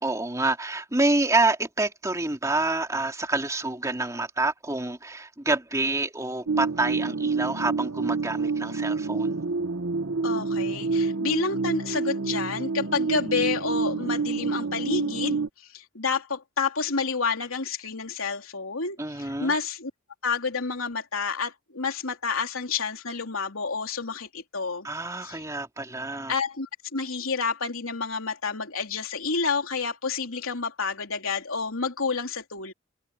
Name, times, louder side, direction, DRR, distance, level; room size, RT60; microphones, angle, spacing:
voice 1, 0.0-9.4 19.0-19.5 24.8-26.3, right 2 dB, 15° right, 2.8 m, -27 dB
sound 1, 6.5-15.5, right 4 dB, 85° right, 1.2 m, -28 dB
voice 2, 10.2-19.9 20.2-24.9 25.2-25.4 26.3-32.7, left 4 dB, 85° left, 3.2 m, -29 dB
head